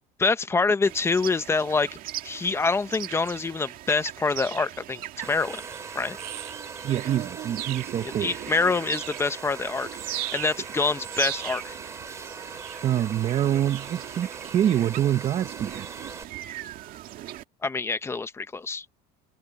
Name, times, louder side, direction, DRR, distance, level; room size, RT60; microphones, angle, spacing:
voice 1, 0.2-1.9 2.2-5.0 5.3-5.6 5.9-6.2 8.0-11.8 17.6-18.8, left 4 dB, 15° left, 0.9 m, -26 dB
sound 1, 0.8-17.4, right 13 dB, 50° right, 2.0 m, -38 dB
Domestic sounds home sounds, 5.2-16.2, right 4 dB, 15° right, 5.4 m, -41 dB
voice 2, 6.8-8.3 12.8-15.9, right 11 dB, 35° right, 0.9 m, -25 dB
cardioid pair, 155°, 18 cm